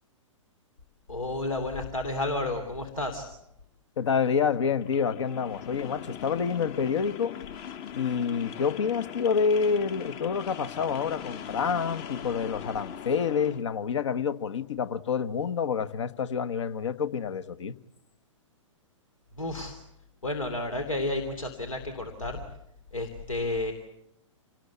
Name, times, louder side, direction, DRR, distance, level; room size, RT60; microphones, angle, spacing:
voice 1, 1.1-3.3 19.4-19.8 20.2-22.4 22.9-23.7, left 2 dB, 85° left, 3.0 m, -31 dB
voice 2, 4.0-7.4 7.9-17.7, left 6 dB, 60° left, 1.3 m, -28 dB
sound 1, 4.8-13.6, left 8 dB, 35° left, 1.0 m, -40 dB
27.5 x 19.0 x 8.3 m
figure-of-eight pair, 115°, 17 cm